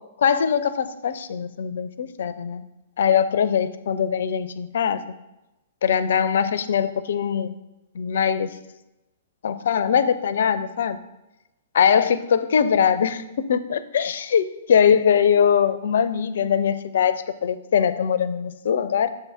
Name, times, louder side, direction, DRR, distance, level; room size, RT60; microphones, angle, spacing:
voice 1, 0.2-2.6 3.0-5.0 5.8-7.5 7.9-8.6 9.4-11.0 11.7-19.1, left 7 dB, 60° left, 14 dB, 0.4 m, -21 dB
6.7 x 4.6 x 5.7 m, 0.97 s
figure-of-eight pair, 110°, 0 cm